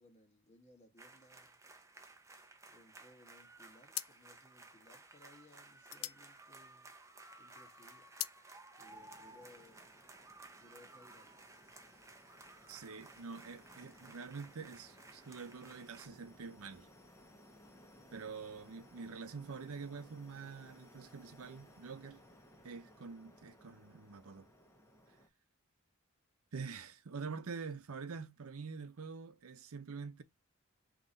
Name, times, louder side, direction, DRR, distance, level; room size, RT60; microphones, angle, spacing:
voice 1, 0.0-1.6 2.7-6.9 7.4-8.1 8.8-10.0 10.6-11.7, left 1 dB, 30° left, 1.4 m, -63 dB
sound 1, 1.0-16.1, right 2 dB, 15° right, 0.6 m, -57 dB
sound 2, 3.2-3.5 3.9-7.3 7.6-8.4, left 15 dB, 75° left, 0.4 m, -44 dB
sound 3, 8.8-25.3, left 1 dB, 15° left, 0.8 m, -61 dB
voice 2, 12.7-16.9 18.1-22.2 22.6-24.5 26.5-30.2, right 5 dB, 85° right, 0.6 m, -46 dB
3.9 x 3.0 x 4.0 m
head